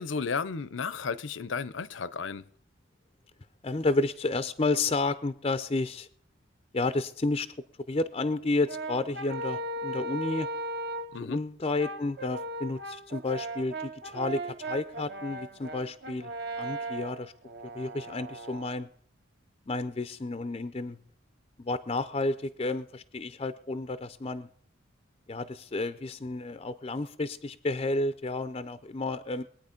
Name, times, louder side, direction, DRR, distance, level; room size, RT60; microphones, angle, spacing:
voice 1, 0.0-2.4 11.1-11.4, left 5 dB, 70° left, 0.6 m, -33 dB
voice 2, 3.6-6.1 6.7-7.5 7.9-10.5 11.2-16.3 16.6-17.3 17.7-18.9 19.7-21.0 21.6-24.5 25.3-29.4, left 2 dB, 30° left, 0.5 m, -31 dB
Brass instrument, 8.7-11.2 11.8-18.7, right 2 dB, 55° right, 1.0 m, -37 dB
22.0 x 8.9 x 5.1 m
head